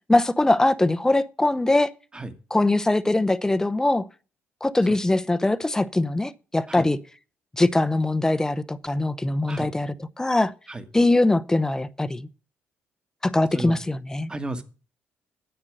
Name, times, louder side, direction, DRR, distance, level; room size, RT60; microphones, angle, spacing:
voice 1, 0.1-1.9 2.5-4.1 4.6-7.0 7.6-10.5 10.9-12.3 13.2-14.3, left 2 dB, 10° left, 0.7 m, -22 dB
voice 2, 14.3-14.6, right 2 dB, 15° right, 1.6 m, -33 dB
9.8 x 7.9 x 7.8 m
cardioid pair, 85°, 5 cm